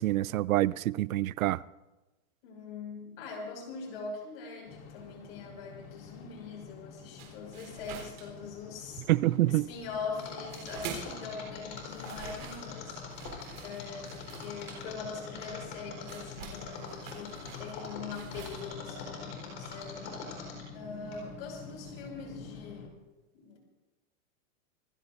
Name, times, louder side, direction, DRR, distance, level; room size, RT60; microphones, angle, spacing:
voice 1, 0.0-1.6 9.1-9.7, right 16 dB, 85° right, 0.6 m, -26 dB
voice 2, 2.4-9.1 9.5-20.2 20.7-22.9 23.3-23.6, left 4 dB, 45° left, 5.9 m, -42 dB
sound 1, 4.6-22.9, left 5 dB, 75° left, 2.8 m, -48 dB
sound 2, 7.2-9.0 9.2-11.3 11.6-18.6, right 7 dB, 45° right, 4.0 m, -46 dB
Mechanisms, 10.2-20.8 21.1-21.2, left 5 dB, 25° left, 4.3 m, -43 dB
27.0 x 16.0 x 2.6 m
supercardioid pair, 175°, 40 cm